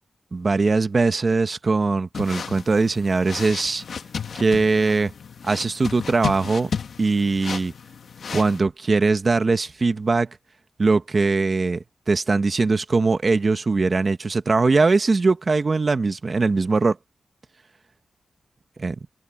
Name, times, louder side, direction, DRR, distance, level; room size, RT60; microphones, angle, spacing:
voice 1, 0.3-3.8 4.3-5.1 5.4-6.7 7.0-7.7 8.3-10.3 10.8-17.0 18.8-18.9, right 3 dB, 40° right, 1.2 m, -21 dB
sound 1, 2.1-8.6, left 6 dB, 70° left, 1.7 m, -33 dB
open air
wide cardioid pair, 105°, 0 cm